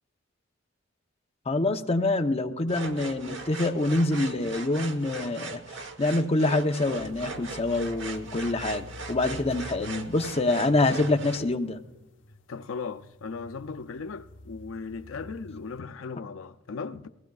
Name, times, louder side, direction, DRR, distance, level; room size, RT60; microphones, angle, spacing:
voice 1, 1.5-11.8, left 2 dB, 30° left, 0.8 m, -26 dB
sound 1, 2.7-11.5, right 3 dB, 65° right, 1.1 m, -39 dB
sound 2, 6.9-15.8, left 1 dB, 65° left, 0.8 m, -47 dB
voice 2, 12.5-17.1, left 5 dB, 85° left, 0.5 m, -37 dB
20.0 x 15.5 x 2.4 m
head